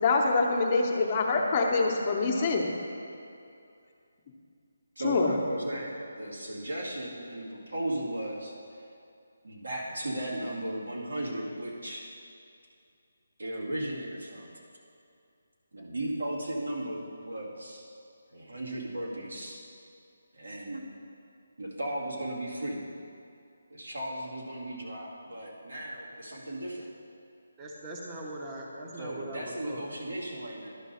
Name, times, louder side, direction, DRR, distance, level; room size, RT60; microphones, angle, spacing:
voice 1, 0.0-2.7 5.0-5.4, left 3 dB, 30° left, 0 dB, 0.8 m, -25 dB
voice 2, 5.0-8.5 9.4-12.0 13.4-14.6 15.7-17.9 18.3-19.6 20.3-20.8 21.6-22.9 23.7-26.9 29.0-30.8, right 1 dB, 90° right, -4 dB, 2.2 m, -36 dB
voice 3, 27.6-29.9, right 1 dB, 15° right, -3 dB, 0.8 m, -40 dB
11.5 x 5.4 x 4.2 m, 2.5 s
hypercardioid pair, 165°, 0 cm